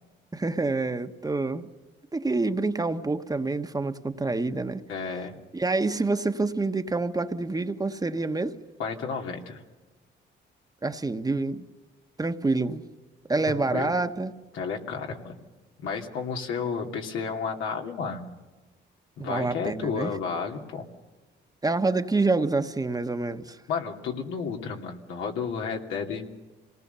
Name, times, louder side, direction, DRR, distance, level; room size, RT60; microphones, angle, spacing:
voice 1, 0.3-1.7 2.1-4.8 5.5-8.6 10.8-11.6 12.2-12.9 13.3-14.3 19.2-20.1 21.6-23.6, right 3 dB, 20° right, 8 dB, 1.2 m, -27 dB
voice 2, 4.9-5.4 8.8-9.6 13.4-13.9 14.5-15.4 15.8-18.3 19.2-20.9 23.7-26.2, left 5 dB, 85° left, 2 dB, 2.7 m, -32 dB
26.5 x 19.5 x 6.9 m, 1.2 s
cardioid pair, 90°, 20 cm